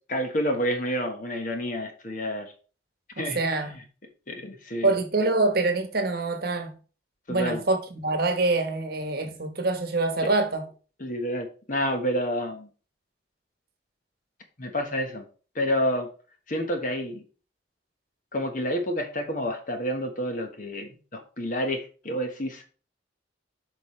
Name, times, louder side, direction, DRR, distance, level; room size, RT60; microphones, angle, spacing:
voice 1, 0.1-2.5 3.2-3.6 4.3-4.9 7.3-7.6 10.2-10.3 11.0-12.7 14.6-15.2 15.5-16.1 16.5-17.2 18.3-22.7, equal, 45° left, 1.2 m, -29 dB
voice 2, 3.2-3.8 4.8-6.7 7.3-10.7, right 2 dB, 55° right, 1.1 m, -25 dB
8.5 x 5.2 x 3.2 m
head